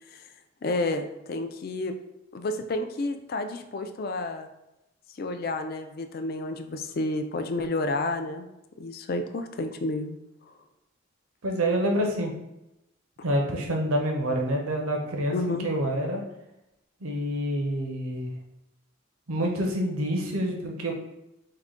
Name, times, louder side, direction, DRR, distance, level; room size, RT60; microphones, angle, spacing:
voice 1, 0.6-1.9 2.3-4.5 5.2-8.5 8.8-10.2 10.5-10.6 15.3-15.7, left 2 dB, 45° left, 7 dB, 0.3 m, -30 dB
voice 2, 11.4-12.3 13.2-15.3 15.6-16.2 17.0-18.3 19.3-20.9, right 1 dB, 90° right, 1 dB, 0.7 m, -27 dB
4.7 x 2.2 x 3.7 m, 0.91 s
head